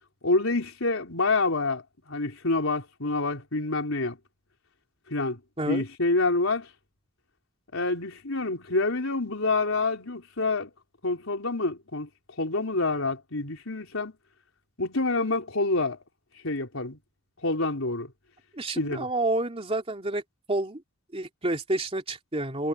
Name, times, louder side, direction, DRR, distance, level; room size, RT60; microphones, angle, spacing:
voice 1, 0.2-4.2 5.1-5.4 5.7-6.7 7.7-10.7 11.0-12.1 12.4-14.1 14.8-16.0 16.4-17.0 17.4-18.1 18.8-19.1, left 3 dB, 80° left, 4.2 m, -27 dB
voice 2, 18.5-20.2 20.5-20.8 21.1-22.7, right 2 dB, 30° right, 2.9 m, -29 dB
head